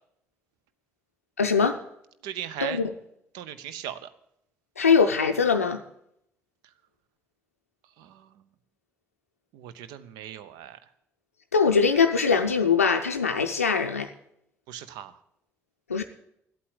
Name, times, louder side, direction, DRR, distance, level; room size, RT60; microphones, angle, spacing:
voice 1, 1.4-1.8 2.6-2.9 4.8-5.8 11.5-14.1 15.9-16.0, left 5 dB, 85° left, 0.5 m, -22 dB
voice 2, 2.2-2.8 3.3-4.1 8.0-8.4 9.5-10.8 14.7-15.2, right 10 dB, 65° right, 0.7 m, -38 dB
12.5 x 8.5 x 9.0 m
figure-of-eight pair, 45°, 8 cm